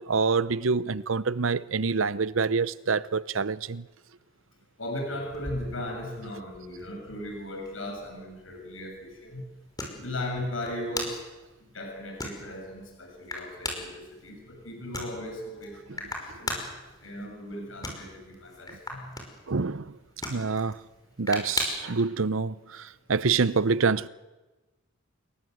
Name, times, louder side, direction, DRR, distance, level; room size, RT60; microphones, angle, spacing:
voice 1, 0.0-3.9 19.5-19.9 20.3-20.8 21.2-24.1, right 4 dB, 85° right, 0.8 m, -26 dB
voice 2, 4.8-9.4 9.9-11.2 11.7-16.6 17.0-19.1, left 1 dB, 85° left, 7.6 m, -37 dB
sound 1, 5.3-22.0, left 2 dB, 20° left, 5.5 m, -40 dB
28.5 x 21.5 x 8.0 m
head